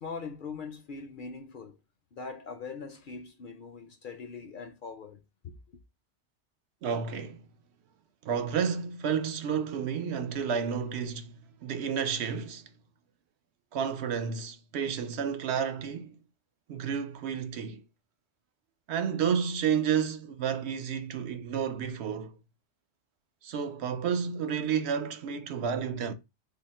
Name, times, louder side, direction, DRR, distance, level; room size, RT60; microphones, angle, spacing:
voice 1, 0.0-1.8 2.1-5.6, left 5 dB, 55° left, 0.6 m, -41 dB
voice 2, 6.8-7.4 8.2-12.7 13.7-16.2 16.7-17.8 18.9-22.4 23.4-26.1, right 7 dB, 70° right, 0.8 m, -31 dB
3.6 x 2.0 x 4.0 m
omnidirectional pair, 1.2 m